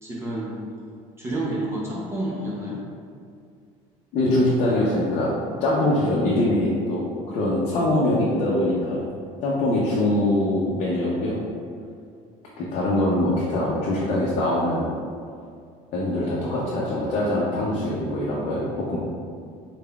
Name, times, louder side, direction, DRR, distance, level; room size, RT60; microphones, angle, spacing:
voice 1, 0.0-0.6 1.2-2.8, right 1 dB, 20° right, -5 dB, 0.5 m, -29 dB
voice 2, 4.1-5.3 5.6-9.0 9.4-11.4 12.6-14.9 15.9-19.0, left 1 dB, 50° left, -6 dB, 0.6 m, -23 dB
4.0 x 3.6 x 2.3 m, 2.3 s
cardioid pair, 160°, 14 cm